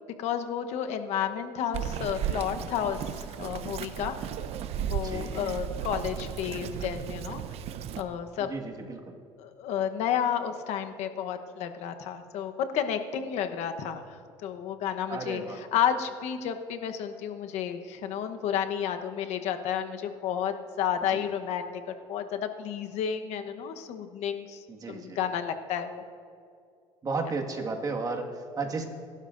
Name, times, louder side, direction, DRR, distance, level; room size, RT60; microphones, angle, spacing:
voice 1, 0.2-4.1 4.8-7.4 8.0-8.5 9.4-26.0, left 8 dB, 70° left, 7 dB, 1.0 m, -31 dB
Bird vocalization bird call bird song, 1.7-8.0, right 9 dB, 60° right, 0.7 m, -35 dB
voice 2, 8.4-9.1 15.1-15.6 21.1-21.2 24.7-25.2 27.0-28.9, right 3 dB, 30° right, 1 dB, 1.8 m, -33 dB
28.0 x 12.5 x 2.6 m, 2.3 s
supercardioid pair, 100°, 12 cm